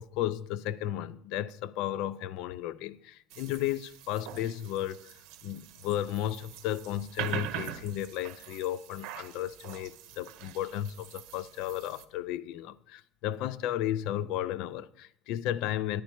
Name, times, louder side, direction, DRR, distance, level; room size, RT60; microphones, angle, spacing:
voice 1, 0.0-5.1 5.4-16.0, left 12 dB, 65° left, 0.4 m, -34 dB
sound 1, 3.3-12.0, right 11 dB, 70° right, 0.8 m, -43 dB
10.5 x 10.0 x 4.4 m
cardioid pair, 150°, 0 cm